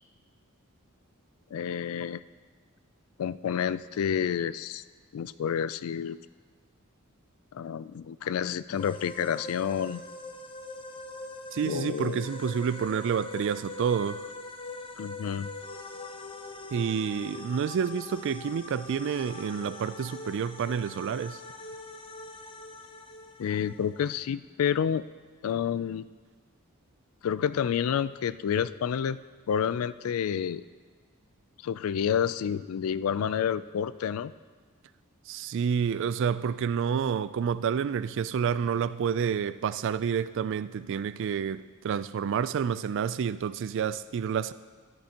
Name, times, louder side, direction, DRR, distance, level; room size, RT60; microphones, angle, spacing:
voice 1, 1.5-2.2 3.2-4.8 5.1-6.2 7.5-10.0 11.6-12.3 15.0-15.5 23.4-25.0 25.4-26.1 27.2-29.2 29.5-30.6 31.6-34.3, left 8 dB, 75° left, 0.3 m, -29 dB
sound 1, 8.7-24.1, left 3 dB, 25° left, 0.6 m, -43 dB
voice 2, 11.5-14.2 16.7-21.4 35.3-44.5, right 7 dB, 60° right, 0.3 m, -29 dB
13.5 x 11.5 x 2.9 m
head